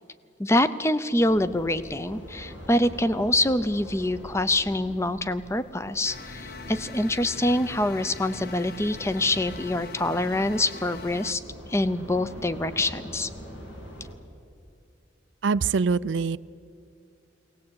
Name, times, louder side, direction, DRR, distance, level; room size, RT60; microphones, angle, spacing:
voice 1, 0.4-11.4 11.7-13.3, left 1 dB, 15° left, 13 dB, 0.6 m, -25 dB
sound 1, 1.2-14.2, equal, 85° left, 3.7 m, -43 dB
sound 2, 6.0-11.3, left 4 dB, 50° left, 0.8 m, -42 dB
voice 2, 15.4-16.4, right 5 dB, 80° right, 17 dB, 0.5 m, -24 dB
21.5 x 18.5 x 8.7 m, 2.3 s
head